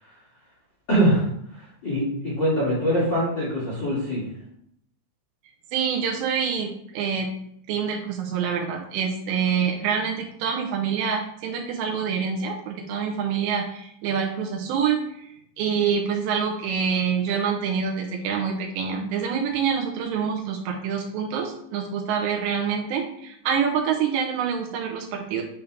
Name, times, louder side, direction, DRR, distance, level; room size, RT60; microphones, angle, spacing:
voice 1, 0.9-4.2, equal, 35° left, -8 dB, 1.8 m, -23 dB
voice 2, 5.7-7.4 7.7-25.4, right 7 dB, 85° right, 0 dB, 2.8 m, -26 dB
9.4 x 3.6 x 3.3 m, 0.72 s
omnidirectional pair, 5.4 m